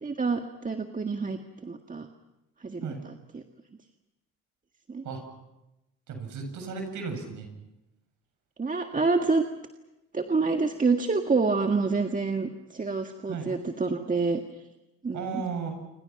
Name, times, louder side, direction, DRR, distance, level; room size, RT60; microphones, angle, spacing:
voice 1, 0.0-2.1 2.6-3.4 4.9-5.0 8.6-9.4 10.1-14.4 15.0-15.4, right 4 dB, 25° right, 5 dB, 1.7 m, -27 dB
voice 2, 6.1-7.5 13.3-13.5 15.1-15.7, right 5 dB, 65° right, 5 dB, 7.5 m, -34 dB
28.5 x 25.0 x 5.9 m, 0.95 s
supercardioid pair, 75°, 32 cm